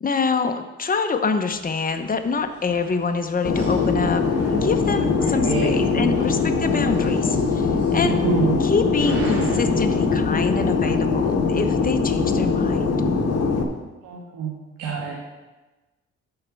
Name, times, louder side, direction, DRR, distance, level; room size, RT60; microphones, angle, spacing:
voice 1, 0.0-4.2 4.5-8.2 8.6-13.0, left 4 dB, 30° left, 7 dB, 0.9 m, -25 dB
sound 1, 1.5-9.6, right 3 dB, 50° right, 3.0 m, -38 dB
Fixed-wing aircraft airplane, 3.4-13.6, left 4 dB, 55° left, 1.3 m, -22 dB
voice 2, 5.2-5.7 8.0-8.6 14.0-14.5 14.8-15.1, right 4 dB, 90° right, -3 dB, 1.7 m, -26 dB
11.5 x 4.5 x 6.9 m, 1.2 s
cardioid pair, 90°, 30 cm